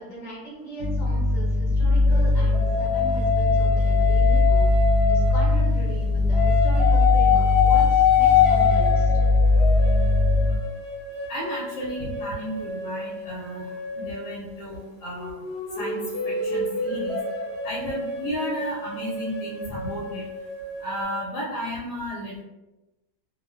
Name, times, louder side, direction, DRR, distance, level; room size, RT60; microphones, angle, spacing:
voice 1, 0.0-4.7 5.1-9.1, equal, 40° left, -5 dB, 0.6 m, -38 dB
sound 1, 0.8-10.6, left 2 dB, 70° right, 0.9 m, -20 dB
sound 2, 2.1-5.9 6.3-14.4 15.1-21.0, left 7 dB, 55° right, 0.3 m, -26 dB
voice 2, 11.3-15.3 15.8-16.0 16.2-17.2 17.6-20.3 20.8-22.4, equal, 85° left, -4 dB, 1.1 m, -33 dB
2.4 x 2.3 x 2.3 m, 1.0 s
omnidirectional pair, 1.7 m